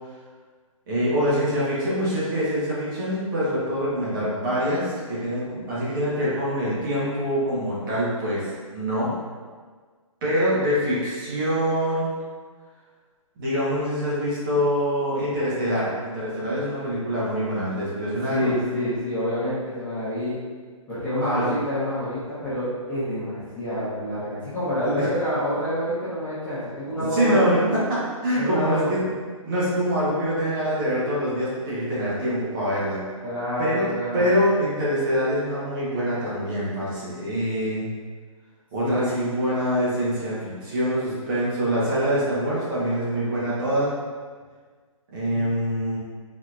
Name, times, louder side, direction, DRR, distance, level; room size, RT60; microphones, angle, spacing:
voice 1, 0.9-9.1 10.2-12.1 13.4-18.5 21.2-21.5 24.8-25.1 27.0-29.1 29.4-33.0 33.6-33.9 34.1-37.8 38.7-43.9 45.1-46.0, equal, 40° right, -8 dB, 1.3 m, -25 dB
voice 2, 18.3-20.4 20.9-27.4 28.4-28.9 33.2-34.3 38.8-39.1 45.3-45.5, equal, 10° left, -14 dB, 1.0 m, -27 dB
4.1 x 2.8 x 2.5 m, 1.5 s
figure-of-eight pair, 140°, 18 cm